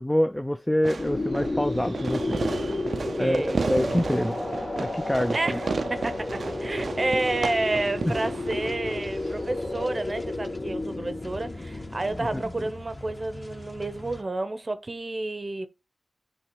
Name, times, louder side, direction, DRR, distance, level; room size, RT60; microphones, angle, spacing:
voice 1, 0.0-2.4 3.2-4.4 4.8-5.6 8.0-8.1 12.3-12.4, left 1 dB, 10° left, 0.4 m, -26 dB
Fireworks, 0.8-9.8, right 4 dB, 75° right, 0.4 m, -33 dB
sound 1, 1.0-12.5, left 2 dB, 70° left, 2.8 m, -32 dB
voice 2, 3.0-3.6 5.3-15.7, right 2 dB, 40° right, 0.7 m, -30 dB
sound 2, 5.9-14.2, left 2 dB, 35° left, 1.2 m, -43 dB
8.8 x 3.3 x 4.5 m
wide cardioid pair, 65°, 0 cm